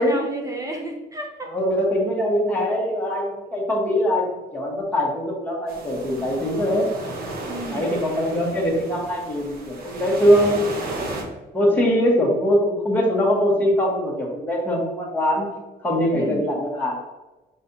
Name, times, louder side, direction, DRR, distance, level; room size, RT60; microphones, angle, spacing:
voice 1, 0.0-1.5 7.5-7.8 16.1-16.4, right 2 dB, 20° right, 2 dB, 0.6 m, -32 dB
voice 2, 1.5-6.9 7.7-10.8 11.5-15.5 15.8-17.0, equal, 10° left, -3 dB, 1.2 m, -22 dB
sound 1, 5.7-11.2, right 2 dB, 60° right, 1.0 m, -34 dB
5.6 x 3.3 x 2.7 m, 1.1 s
cardioid pair, 110°, 18 cm